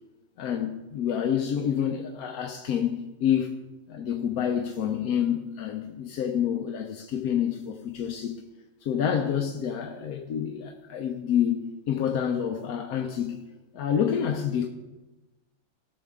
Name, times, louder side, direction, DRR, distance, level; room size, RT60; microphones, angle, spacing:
voice 1, 0.4-3.5 3.9-8.4 8.8-13.4 13.7-14.7, left 8 dB, 85° left, 1.2 m, -28 dB
17.5 x 6.3 x 3.6 m
omnidirectional pair, 1.5 m